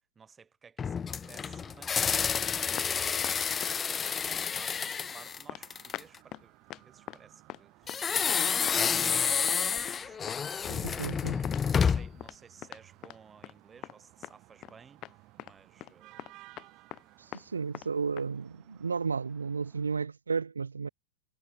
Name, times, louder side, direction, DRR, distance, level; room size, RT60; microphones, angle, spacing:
voice 1, 0.1-3.2 3.6-16.3, right 6 dB, 15° right, 5.1 m, -56 dB
sound 1, 0.8-6.2 7.9-12.2, left 6 dB, 20° left, 1.0 m, -29 dB
sound 2, 1.2-20.1, right 21 dB, 40° right, 6.0 m, -59 dB
sound 3, 1.3-1.8 2.3-2.9 3.2-4.0 4.5-4.6 5.1-5.2 5.5-5.6 5.9-6.4 6.7-7.2 7.5-7.6 7.9-8.4 8.7-8.8 9.1-9.2 9.5-9.6 9.9-10.0 10.3-10.4 10.7-10.8 11.0-11.2 11.4-13.2 13.4-13.5 13.8-14.3 14.6-14.8 15.0-15.1 15.4-15.5 15.8-15.9 16.2-17.0 17.3-17.5 17.7-17.9 18.2-18.3, left 15 dB, 35° left, 1.8 m, -43 dB
voice 2, 10.7-11.4 17.2-20.9, right 5 dB, 75° right, 0.6 m, -33 dB
figure-of-eight pair, 90°, 0 cm